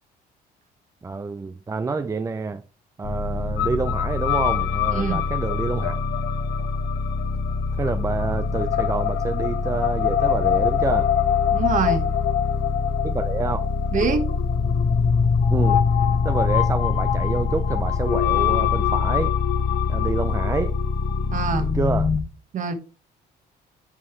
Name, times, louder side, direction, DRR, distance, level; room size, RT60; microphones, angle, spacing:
voice 1, 1.0-2.6 3.0-6.0 7.8-11.1 13.0-13.6 15.5-15.8 16.2-19.3 19.9-20.7 21.7-22.1, right 4 dB, 20° right, 0.5 m, -27 dB
sound 1, 3.0-22.2, left 4 dB, 40° left, 1.2 m, -25 dB
sound 2, 3.6-21.7, left 12 dB, 80° left, 0.9 m, -27 dB
voice 2, 4.9-5.2 11.5-12.1 13.9-14.2 21.3-21.7 22.5-22.7, right 5 dB, 50° right, 1.5 m, -24 dB
9.8 x 5.5 x 3.2 m
cardioid pair, 110°, 17 cm